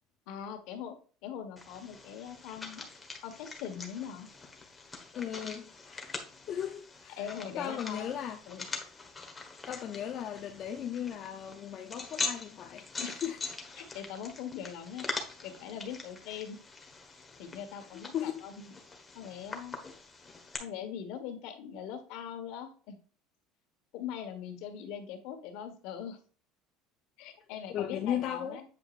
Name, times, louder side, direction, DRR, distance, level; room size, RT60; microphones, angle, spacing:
voice 1, 0.3-0.9 1.2-2.9 3.2-4.3 7.2-8.1 8.5-8.7 13.0-13.2 13.9-15.1 15.4-16.6 17.4-18.7 19.1-19.8 20.6-23.0 23.9-26.2 27.2-28.6, left 8 dB, 70° left, 1.4 m, -41 dB
sound 1, 1.6-20.6, left 3 dB, 15° left, 1.4 m, -43 dB
voice 2, 5.1-6.2 6.5-7.3 7.6-8.4 9.6-13.5 17.9-18.4 27.7-28.6, left 9 dB, 45° left, 0.7 m, -37 dB
8.2 x 4.9 x 2.5 m
supercardioid pair, 125°, 0 cm